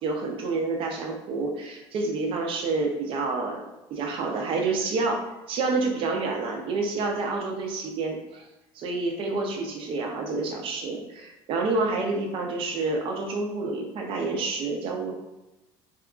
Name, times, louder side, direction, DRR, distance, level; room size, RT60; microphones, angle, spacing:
voice 1, 0.0-3.6 3.9-5.2 5.5-8.5 8.7-15.1, right 3 dB, 55° right, 1 dB, 0.5 m, -28 dB
2.7 x 2.4 x 2.3 m, 1.0 s
cardioid pair, 125°, 11 cm